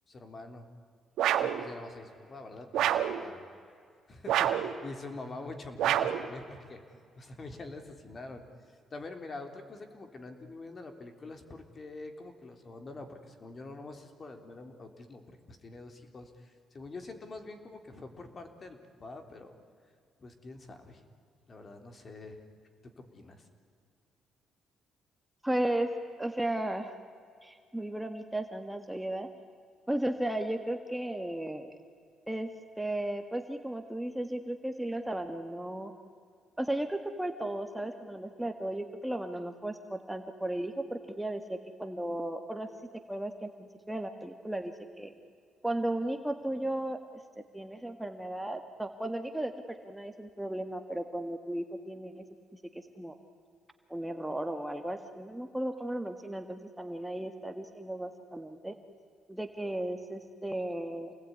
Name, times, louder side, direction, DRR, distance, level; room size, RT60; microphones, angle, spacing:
voice 1, 0.1-0.7 1.4-3.4 4.1-6.8 7.2-19.6 20.2-21.0 21.5-22.4 22.8-23.5, left 2 dB, 40° left, 7 dB, 3.6 m, -45 dB
sound 1, 1.2-1.6 2.7-3.2 4.3-4.7 5.8-6.3, right 11 dB, 80° right, 1.7 m, -27 dB
voice 2, 25.4-25.9 26.2-27.0 27.4-29.3 29.9-31.8 32.3-32.5 32.8-35.9 36.6-42.7 43.1-45.1 45.6-47.0 47.5-52.2 52.7-53.1 53.9-58.7 59.3-61.1, right 1 dB, 5° right, 6 dB, 1.8 m, -35 dB
28.0 x 20.5 x 9.7 m, 2.2 s
cardioid pair, 90°, 0 cm